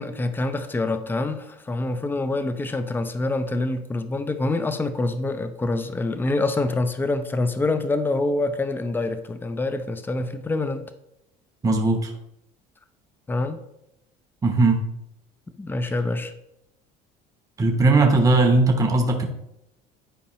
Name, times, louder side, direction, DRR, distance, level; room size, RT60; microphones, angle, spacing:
voice 1, 0.0-10.9 13.3-13.6 15.6-16.3, left 2 dB, 10° left, 10 dB, 0.5 m, -26 dB
voice 2, 11.6-12.1 14.4-14.8 17.6-19.2, right 3 dB, 20° right, 3 dB, 1.0 m, -18 dB
10.0 x 4.5 x 3.1 m, 0.82 s
supercardioid pair, 105°, 18 cm